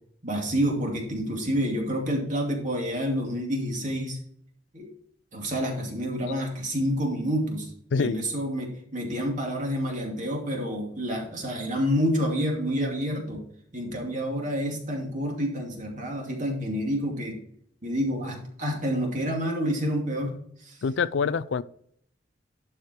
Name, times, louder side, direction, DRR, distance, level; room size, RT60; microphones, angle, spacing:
voice 1, 0.2-4.2 4.7-4.9 5.3-7.7 7.9-13.4 13.7-17.4 17.8-20.3 20.6-20.8, equal, 45° right, 2.6 m, -28 dB
voice 2, 20.8-21.6, left 5 dB, 75° left, 0.4 m, -25 dB
11.5 x 4.9 x 4.5 m
head